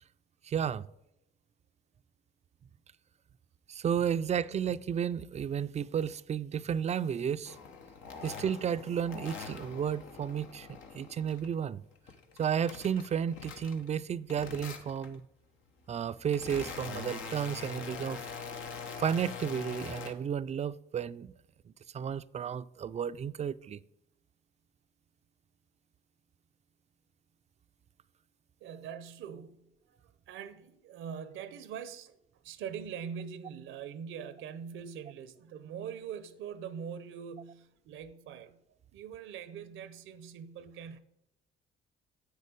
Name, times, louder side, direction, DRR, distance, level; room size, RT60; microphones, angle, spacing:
voice 1, 0.4-0.9 3.7-7.6 8.2-10.7 10.9-11.8 12.4-15.2 15.9-18.3 19.0-21.3 21.9-23.8, right 8 dB, 35° right, 0.4 m, -32 dB
sound 1, 7.4-11.5 11.9-14.0 14.3-15.2 15.8-20.1, left 5 dB, 85° left, 1.3 m, -44 dB
voice 2, 28.6-32.2 32.4-38.6 38.9-41.0, right 7 dB, 90° right, 0.8 m, -43 dB
8.0 x 6.6 x 5.1 m
cardioid pair, 90°, 20 cm